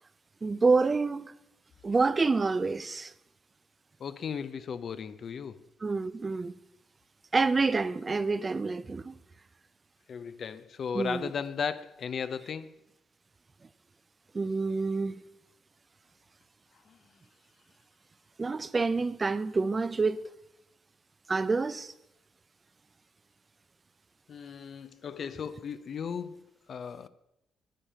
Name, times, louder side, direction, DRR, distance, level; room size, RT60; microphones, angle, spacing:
voice 1, 0.4-1.3 1.8-3.1 5.8-6.6 7.3-9.1 10.9-11.3 14.3-15.1 18.4-20.3 21.3-21.9, right 4 dB, 30° right, 0.4 m, -27 dB
voice 2, 4.0-5.6 10.1-12.7 24.3-26.4 26.7-27.1, left 6 dB, 55° left, 0.5 m, -36 dB
10.0 x 8.8 x 5.6 m
cardioid pair, 90°, 0 cm